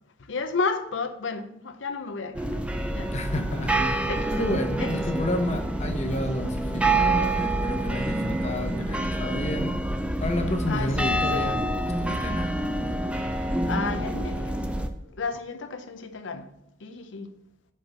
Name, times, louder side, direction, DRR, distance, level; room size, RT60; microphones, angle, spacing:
voice 1, 0.3-2.6 2.9-3.4 4.1-4.3 4.8-4.9 10.7-11.5 13.7-14.6 15.2-16.4 16.8-17.3, left 4 dB, 75° left, 0.7 m, -32 dB
sound 1, 2.3-14.9, right 1 dB, 5° right, 0.5 m, -27 dB
voice 2, 3.1-3.9 4.3-9.7 10.2-11.6 12.0-12.6, left 1 dB, 35° left, 1.0 m, -30 dB
5.7 x 5.5 x 6.0 m
head